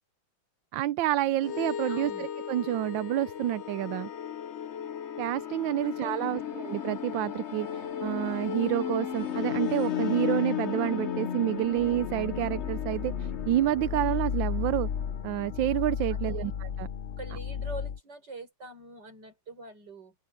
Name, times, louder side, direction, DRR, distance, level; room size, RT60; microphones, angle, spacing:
voice 1, 0.7-4.1 5.2-14.9 15.2-16.5 16.8-16.9, right 14 dB, 80° right, 1.3 m, -29 dB
sound 1, 1.4-18.0, left 8 dB, 60° left, 0.7 m, -33 dB
voice 2, 1.9-2.3 5.8-6.5 16.1-16.5 17.2-20.1, right 2 dB, 60° right, 6.2 m, -44 dB
sound 2, 9.4-18.3, left 4 dB, 35° left, 6.9 m, -64 dB
open air
omnidirectional pair, 2.1 m